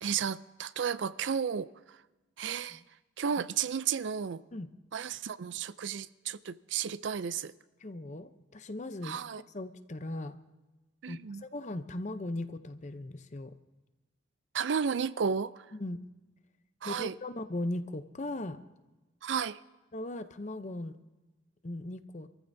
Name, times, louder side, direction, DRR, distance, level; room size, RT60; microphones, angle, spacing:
voice 1, 0.0-2.0 2.4-2.8 3.2-4.4 4.9-7.5 9.0-9.4 11.0-11.4 14.5-15.7 16.8-17.1 19.2-19.6, right 7 dB, 75° right, 0.4 m, -33 dB
voice 2, 7.8-9.2 9.5-10.4 11.1-13.5 15.7-16.0 16.8-18.6 19.9-21.0 21.6-22.3, left 1 dB, 40° left, 0.7 m, -38 dB
27.0 x 14.5 x 2.7 m
head